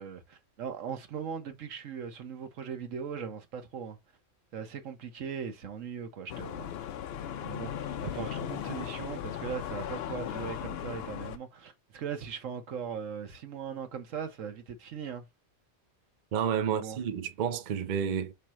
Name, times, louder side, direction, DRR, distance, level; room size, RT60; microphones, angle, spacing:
voice 1, 0.0-4.0 4.5-6.7 7.4-15.2 16.7-17.0, right 7 dB, 80° right, 1.4 m, -39 dB
sound 1, 6.3-11.4, left 9 dB, 65° left, 0.7 m, -37 dB
voice 2, 16.3-18.3, right 8 dB, 50° right, 0.5 m, -30 dB
5.0 x 3.3 x 3.0 m
omnidirectional pair, 1.3 m